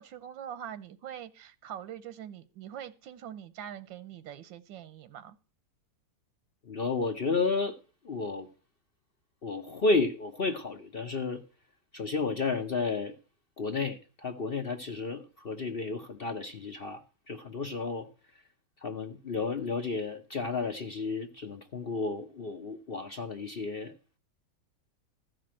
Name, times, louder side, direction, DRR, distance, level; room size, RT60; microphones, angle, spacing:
voice 1, 0.0-5.4, right 9 dB, 90° right, 1.5 m, -43 dB
voice 2, 6.6-7.8 8.0-8.5 9.4-11.4 11.9-13.2 13.6-18.1 18.8-23.9, left 3 dB, 50° left, 0.7 m, -32 dB
14.5 x 5.2 x 7.4 m
omnidirectional pair, 2.0 m